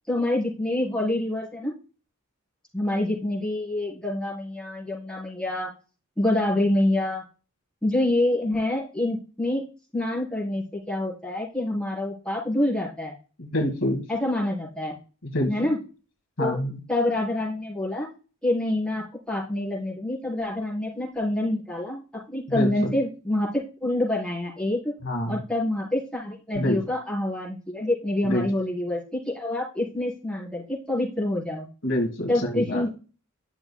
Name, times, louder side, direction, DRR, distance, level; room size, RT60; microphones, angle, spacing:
voice 1, 0.1-1.7 2.7-5.7 6.2-7.2 7.8-9.6 9.9-13.1 14.1-15.0 15.5-15.8 16.4-16.6 16.9-18.1 18.4-22.0 22.3-23.5 23.8-24.9 25.3-31.7 32.3-32.9, left 1 dB, 5° left, -5 dB, 4.0 m, -26 dB
voice 2, 13.4-14.0 15.2-15.7 16.4-16.8 22.5-22.9 25.0-25.4 26.5-26.8 28.2-28.5 31.8-32.8, left 1 dB, 60° left, 3 dB, 1.7 m, -26 dB
11.5 x 6.8 x 2.3 m, 0.35 s
head